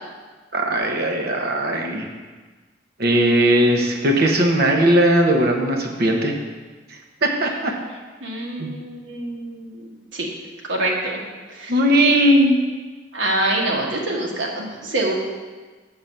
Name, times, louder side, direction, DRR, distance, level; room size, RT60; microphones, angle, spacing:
voice 1, 0.5-2.0 3.0-6.3 7.2-7.7 8.6-8.7 11.7-12.6 14.8-15.1, right 1 dB, 55° right, 2 dB, 1.0 m, -18 dB
voice 2, 8.2-10.3 10.7-11.2 11.5-11.7 13.1-15.1, right 1 dB, 85° right, -1 dB, 1.4 m, -25 dB
7.3 x 3.9 x 6.7 m, 1.3 s
head